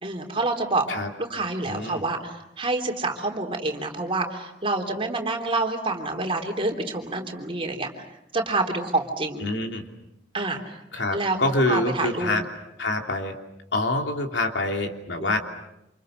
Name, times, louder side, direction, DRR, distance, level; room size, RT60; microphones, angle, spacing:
voice 1, 0.0-0.9 1.2-7.9 8.3-9.5 10.3-10.7 11.1-11.4 11.7-12.3 15.2-15.4, right 2 dB, 30° right, 3 dB, 3.5 m, -27 dB
voice 2, 1.6-2.0 9.4-9.8 10.9-12.4 12.8-13.4 13.7-15.4, left 2 dB, 80° left, 3 dB, 3.1 m, -26 dB
29.0 x 27.5 x 6.6 m, 0.85 s
head